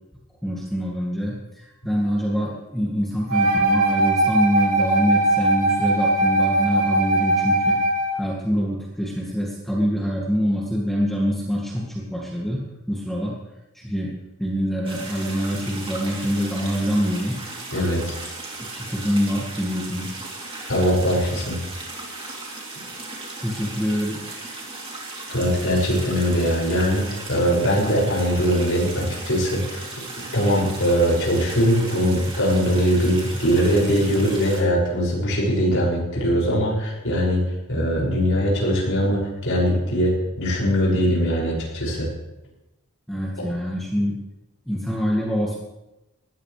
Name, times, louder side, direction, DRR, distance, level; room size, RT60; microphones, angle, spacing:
voice 1, 0.4-7.8 8.1-13.4 13.7-14.1 14.4-17.3 18.6-20.1 23.4-24.2 43.1-44.2 44.7-45.6, equal, ahead, -4 dB, 2.0 m, -25 dB
Wind instrument woodwind instrument, 3.3-8.2, right 2 dB, 65° right, 5.3 m, -20 dB
sound 1, 14.9-34.6, right 2 dB, 25° right, 3.1 m, -36 dB
voice 2, 17.7-18.2 20.7-21.6 25.3-29.9 30.3-42.1, equal, 60° left, -5 dB, 6.3 m, -21 dB
19.0 x 14.5 x 3.4 m, 0.96 s
head